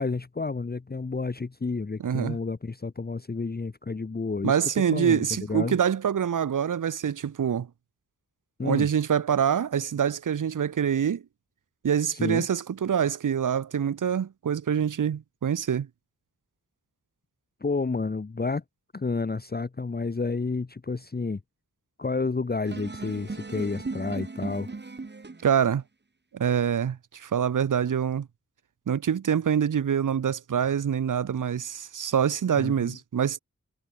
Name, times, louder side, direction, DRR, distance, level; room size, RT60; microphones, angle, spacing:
voice 1, 0.0-5.8 8.6-8.9 12.1-12.4 17.6-18.6 18.9-21.4 22.0-24.7 32.6-33.0, left 4 dB, 30° left, 0.9 m, -30 dB
voice 2, 2.0-2.4 4.4-7.7 8.6-11.2 11.8-15.9 25.4-25.8 26.3-28.3 28.9-33.4, right 8 dB, 70° right, 0.8 m, -25 dB
sound 1, 22.6-25.6, right 3 dB, 35° right, 1.5 m, -37 dB
wide cardioid pair, 75°, 33 cm